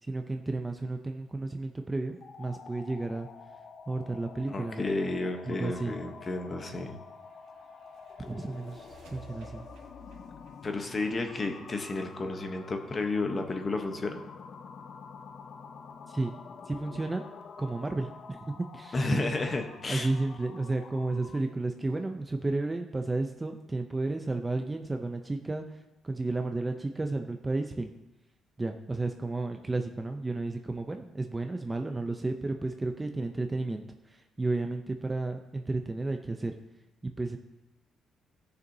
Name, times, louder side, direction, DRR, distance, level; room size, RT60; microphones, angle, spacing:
voice 1, 0.0-3.3 3.9-4.8 5.5-6.0 8.2-9.7 16.1-16.4 16.7-17.3 17.6-19.3 19.9-27.9 28.6-36.6 37.0-37.4, right 2 dB, 15° right, 5 dB, 0.5 m, -32 dB
sound 1, 2.1-21.5, left 5 dB, 45° left, 0.5 m, -48 dB
voice 2, 4.5-7.0 10.6-14.2 18.9-20.1, left 2 dB, 25° left, 5 dB, 0.9 m, -32 dB
sound 2, 6.5-12.2, right 3 dB, 90° right, 2.2 m, -55 dB
17.0 x 6.6 x 2.7 m, 0.93 s
cardioid pair, 170°, 0 cm